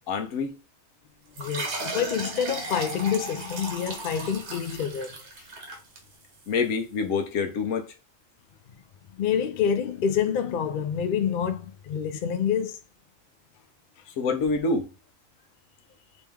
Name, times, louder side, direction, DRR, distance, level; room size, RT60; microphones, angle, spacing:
voice 1, 0.1-0.5 6.5-7.9 14.2-14.9, left 4 dB, 85° left, 1.1 m, -26 dB
sound 1, 1.3-6.5, right 2 dB, 60° right, 1.2 m, -36 dB
voice 2, 1.4-5.2 9.2-12.8, left 8 dB, 65° left, 0.5 m, -27 dB
3.0 x 3.0 x 3.4 m
omnidirectional pair, 1.3 m